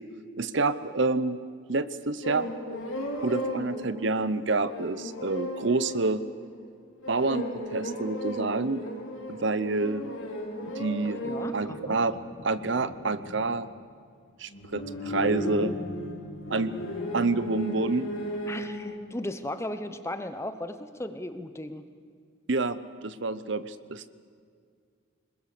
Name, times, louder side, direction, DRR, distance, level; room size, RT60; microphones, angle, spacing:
voice 1, 0.4-1.4 1.7-2.5 3.2-6.2 7.1-7.5 7.7-8.8 9.3-10.1 10.7-11.2 11.5-12.2 12.4-13.7 14.4-15.8 16.5-16.7 17.1-18.1 22.5-24.1, right 3 dB, 60° right, 14 dB, 0.8 m, -28 dB
sound 1, 2.2-6.6 7.0-13.6 14.5-18.9, left 1 dB, 85° left, 4.6 m, -36 dB
voice 2, 11.2-12.0 18.5-21.8, left 1 dB, 15° left, 10 dB, 0.9 m, -36 dB
26.0 x 21.5 x 6.8 m, 2.2 s
head